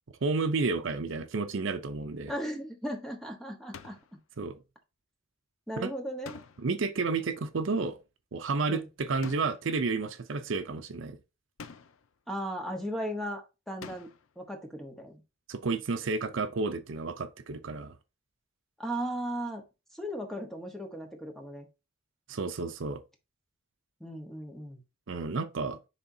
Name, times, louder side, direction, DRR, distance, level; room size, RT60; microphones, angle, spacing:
voice 1, 0.2-2.3 4.4-4.6 5.8-5.9 6.6-8.0 8.3-11.2 15.5-17.9 22.3-23.0 25.1-25.8, right 4 dB, 65° right, 0.6 m, -31 dB
voice 2, 2.3-4.2 5.7-6.4 8.7-8.9 12.3-14.1 14.4-15.2 18.8-19.6 19.9-21.7 24.0-24.8, equal, ahead, 1.2 m, -36 dB
sound 1, 3.7-4.2 6.2-6.9 9.2-9.8 11.6-12.1 13.8-14.4, left 5 dB, 85° left, 0.5 m, -47 dB
9.9 x 3.5 x 2.7 m
head